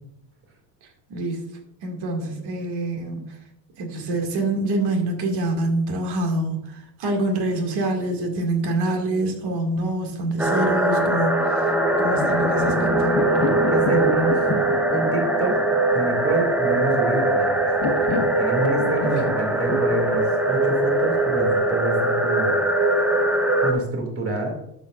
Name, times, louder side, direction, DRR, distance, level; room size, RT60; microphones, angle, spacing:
voice 1, 1.1-1.5 1.8-3.4 3.8-11.7 12.0-13.2 19.0-19.3, right 2 dB, 50° right, 3 dB, 2.2 m, -26 dB
sound 1, 10.4-23.7, right 2 dB, 5° right, 0.7 m, -21 dB
sound 2, 11.8-21.5, left 5 dB, 45° left, 1.6 m, -32 dB
voice 2, 13.7-14.4 14.9-15.6 15.9-17.5 18.4-22.6 23.6-24.5, right 2 dB, 25° right, 3 dB, 2.4 m, -27 dB
11.5 x 7.5 x 2.5 m, 0.78 s
supercardioid pair, 130°, 50 cm